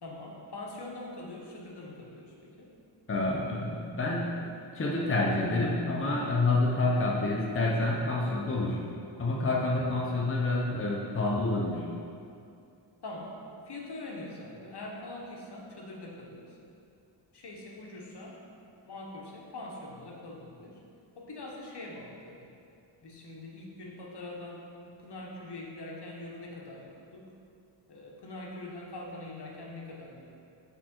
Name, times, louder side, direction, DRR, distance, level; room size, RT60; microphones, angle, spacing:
voice 1, 0.0-2.7 13.0-16.6 17.3-18.4 18.8-20.8 21.2-22.5 23.0-27.3 27.9-30.3, left 2 dB, 60° left, -1 dB, 1.1 m, -43 dB
voice 2, 3.1-4.5 4.7-8.8 9.2-11.9, left 2 dB, 30° left, -2 dB, 0.8 m, -28 dB
7.1 x 3.8 x 4.3 m, 2.5 s
cardioid pair, 75°, 45 cm